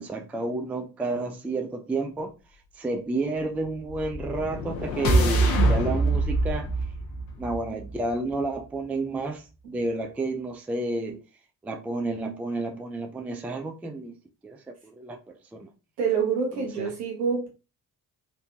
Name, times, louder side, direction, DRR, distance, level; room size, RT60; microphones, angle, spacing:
voice 1, 0.0-2.3 2.8-6.7 7.4-11.2 11.6-14.2 14.4-15.2 15.5-15.7 16.5-16.9, right 2 dB, 5° right, 0.3 m, -31 dB
sound 1, 3.9-8.1, right 2 dB, 60° left, 0.9 m, -24 dB
voice 2, 5.0-5.4 9.6-9.8 16.0-17.5, right 6 dB, 75° right, 1.1 m, -27 dB
3.5 x 2.6 x 2.6 m
figure-of-eight pair, 40°, 48 cm